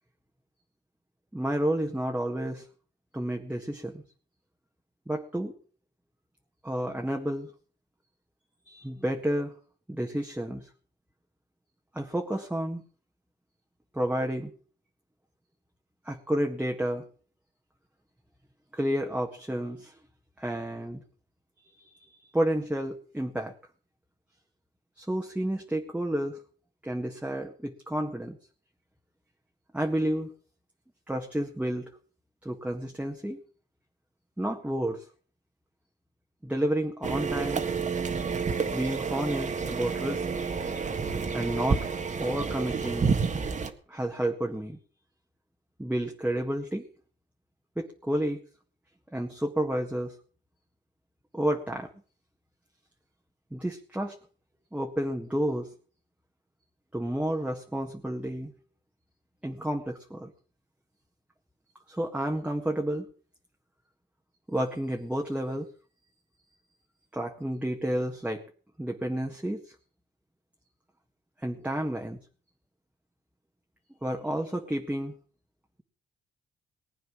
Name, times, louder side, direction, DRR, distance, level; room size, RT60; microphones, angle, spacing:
voice 1, 1.3-2.7 3.1-4.0 5.1-5.5 6.6-7.5 8.7-9.5 9.9-10.7 11.9-12.8 13.9-14.5 16.1-17.0 18.7-19.9 20.4-21.0 22.3-23.5 25.0-26.4 26.8-28.4 29.7-30.3 31.1-31.9 32.4-33.4 34.4-35.0 36.4-37.6 38.7-40.3 41.3-41.8 42.2-43.1 43.9-44.8 45.8-46.9 47.8-48.4 49.1-50.1 51.3-51.9 53.5-54.2 54.7-55.7 56.9-58.5 59.4-60.3 61.9-63.1 64.5-65.7 67.1-68.4 68.8-69.6 71.4-72.2 74.0-75.1, right 1 dB, 5° right, 1 dB, 1.7 m, -30 dB
sound 1, 37.0-43.7, right 5 dB, 40° right, 1.6 m, -29 dB
19.5 x 9.2 x 6.3 m, 0.44 s
cardioid pair, 90°, 20 cm